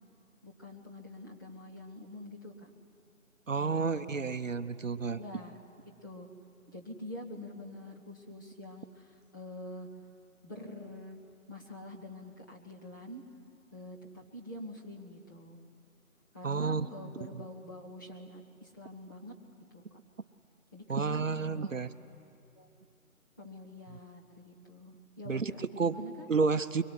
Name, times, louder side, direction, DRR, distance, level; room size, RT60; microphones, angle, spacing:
voice 1, 0.4-2.7 3.6-4.3 5.1-5.6 6.0-6.3 6.7-9.9 10.4-11.2 11.5-13.2 13.7-15.6 16.3-19.3 19.7-19.8 20.7-21.8 22.5-22.7 23.4-26.3, left 1 dB, 15° left, -3 dB, 1.2 m, -46 dB
voice 2, 3.5-5.2 16.4-16.9 20.9-21.9 25.3-25.9 26.3-26.8, right 4 dB, 60° right, 11 dB, 0.9 m, -30 dB
23.5 x 23.0 x 9.9 m, 2.6 s
figure-of-eight pair, 160°, 43 cm